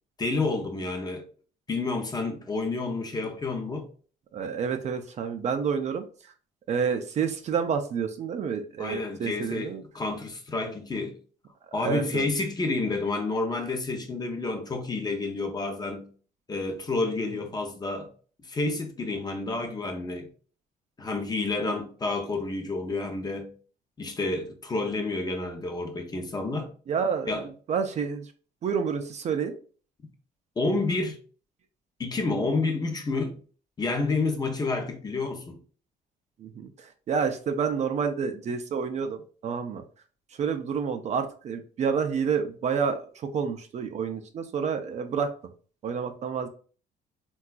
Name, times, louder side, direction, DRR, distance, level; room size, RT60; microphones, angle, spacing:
voice 1, 0.2-1.2 1.7-3.9 8.8-11.2 11.7-16.1 16.5-18.1 18.4-20.3 21.0-23.5 24.0-26.7 27.2-27.5 30.6-31.2 32.0-33.4 33.8-35.6, left 3 dB, 25° left, 0.6 m, -29 dB
voice 2, 4.3-6.0 6.7-9.8 11.8-12.3 21.7-21.8 26.9-28.3 28.6-29.5 36.4-39.8 40.4-45.3 45.8-46.5, right 6 dB, 40° right, 0.4 m, -29 dB
3.6 x 2.3 x 2.3 m
cardioid pair, 110°, 17 cm